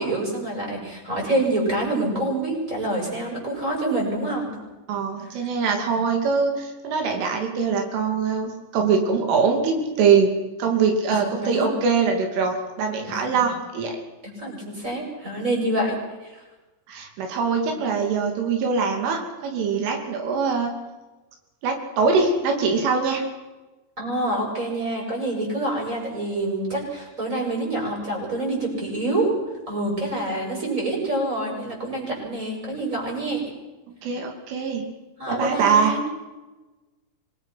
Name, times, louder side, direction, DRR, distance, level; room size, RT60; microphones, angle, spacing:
voice 1, 0.0-4.5 11.1-11.8 13.3-13.4 14.2-16.4 24.0-29.3 29.7-33.4 35.2-36.0, right 1 dB, 15° right, -1 dB, 7.5 m, -26 dB
voice 2, 4.9-10.3 10.6-14.0 16.9-20.7 21.6-23.2 33.9-34.8 35.3-36.0, right 5 dB, 80° right, 3 dB, 5.3 m, -23 dB
26.0 x 22.0 x 5.9 m, 1.1 s
omnidirectional pair, 5.6 m